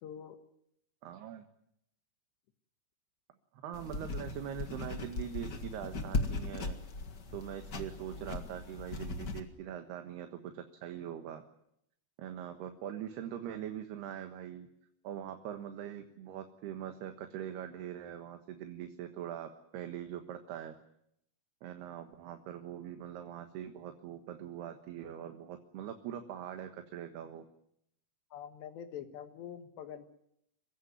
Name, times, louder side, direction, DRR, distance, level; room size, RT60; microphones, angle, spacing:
voice 1, 0.0-0.4 28.3-30.1, left 9 dB, 85° left, 7 dB, 3.7 m, -45 dB
voice 2, 1.0-1.4 3.5-6.8 7.3-11.4 12.2-14.7 15.0-20.8 21.6-27.4, right 10 dB, 75° right, 7 dB, 3.4 m, -42 dB
sound 1, 3.7-9.4, left 3 dB, 50° left, 1.3 m, -38 dB
27.0 x 16.0 x 9.5 m, 0.75 s
omnidirectional pair, 4.8 m